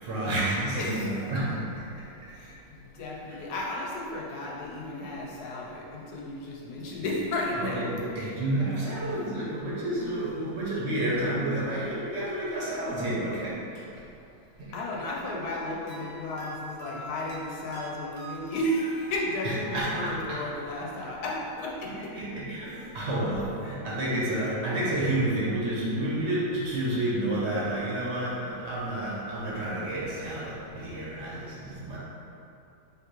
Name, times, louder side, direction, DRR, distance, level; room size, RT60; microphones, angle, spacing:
voice 1, 0.0-2.6 3.3-3.4 7.5-14.0 14.6-14.7 19.4-20.4 22.1-32.0, right 1 dB, 55° right, -7 dB, 1.0 m, -30 dB
voice 2, 0.7-1.2 2.4-7.9 14.7-22.1 22.7-22.9, left 1 dB, 90° left, -2 dB, 1.2 m, -33 dB
sound 1, 15.4-20.6, equal, 35° right, 0.7 m, -45 dB
5.0 x 2.6 x 3.0 m, 2.7 s
omnidirectional pair, 1.6 m